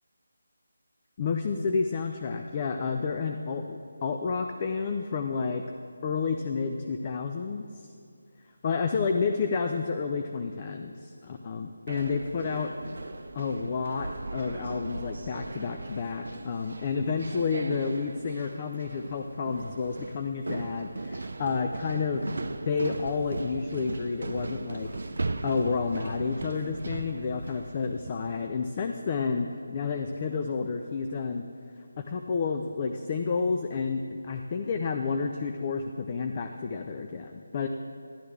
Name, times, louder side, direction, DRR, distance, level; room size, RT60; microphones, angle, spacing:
voice 1, 1.2-5.6 6.0-7.6 8.6-12.7 13.3-22.2 22.6-25.0 25.4-31.4 32.0-37.7, left 5 dB, 30° left, 5 dB, 0.4 m, -30 dB
sound 1, 11.9-28.3, right 2 dB, 60° right, 0.5 m, -38 dB
12.0 x 11.5 x 3.4 m, 2.6 s
figure-of-eight pair, 160°, 0 cm